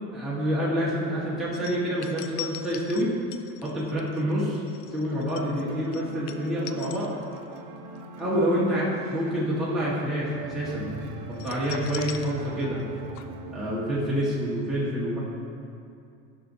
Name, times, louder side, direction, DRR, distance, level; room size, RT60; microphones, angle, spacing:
voice 1, 0.1-3.1 3.6-4.6 4.9-7.1 8.2-8.8 9.1-10.9 11.4-12.8 13.5-15.2, equal, ahead, -10 dB, 1.7 m, -27 dB
sound 1, 1.5-7.6 7.9-8.2 11.3-12.9 13.1-13.2, left 12 dB, 65° left, 0.5 m, -41 dB
sound 2, 5.4-14.0, right 3 dB, 60° right, 0.8 m, -41 dB
10.0 x 6.2 x 2.8 m, 2.5 s
supercardioid pair, 115°, 33 cm